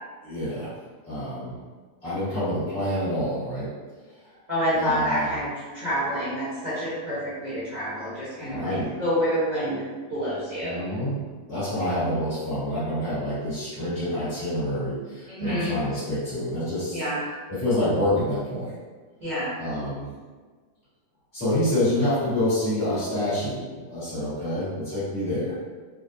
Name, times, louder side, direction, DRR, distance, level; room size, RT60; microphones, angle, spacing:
voice 1, 0.2-0.8 1.1-1.5 2.0-3.7 4.7-5.3 8.4-8.9 10.6-11.2 11.5-17.0 17.5-18.7 19.6-20.1 21.3-25.5, left 1 dB, 50° left, -14 dB, 1.9 m, -27 dB
voice 2, 4.5-5.5 5.7-9.8 10.1-10.8 15.3-15.7 16.9-17.2 19.2-19.5, equal, 35° right, -11 dB, 0.9 m, -27 dB
4.0 x 2.1 x 2.6 m, 1.4 s
omnidirectional pair, 1.5 m